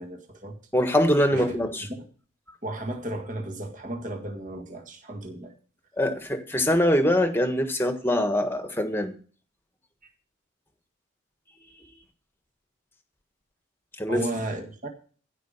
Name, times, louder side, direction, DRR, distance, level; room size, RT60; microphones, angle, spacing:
voice 1, 0.0-0.6 1.3-1.6 1.9-2.1 2.6-5.5 10.0-10.1 14.1-14.9, right 1 dB, 35° right, 4 dB, 1.9 m, -34 dB
voice 2, 0.7-1.8 6.0-9.1 14.0-14.2, left 1 dB, 10° left, 7 dB, 1.4 m, -23 dB
15.5 x 5.2 x 6.7 m, 0.41 s
head